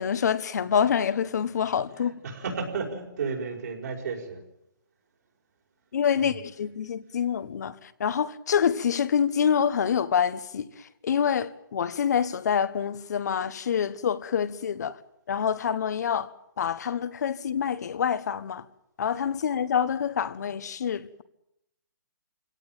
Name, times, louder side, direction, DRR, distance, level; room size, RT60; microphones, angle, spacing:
voice 1, 0.0-2.1 5.9-10.7 11.0-15.0 15.3-16.3 16.6-18.6 19.0-21.2, left 8 dB, 55° left, 1.4 m, -26 dB
voice 2, 2.0-4.4 6.2-6.4, right 5 dB, 55° right, 5.3 m, -33 dB
26.0 x 17.5 x 9.0 m
hypercardioid pair, 165°, 11 cm